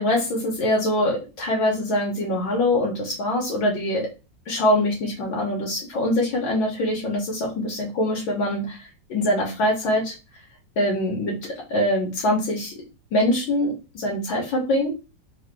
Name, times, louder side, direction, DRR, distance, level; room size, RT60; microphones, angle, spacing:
voice 1, 0.0-4.1 4.5-10.1 10.8-12.7 13.1-14.9, left 1 dB, 90° left, -2 dB, 2.0 m, -24 dB
4.0 x 2.5 x 4.6 m, 0.30 s
omnidirectional pair, 2.1 m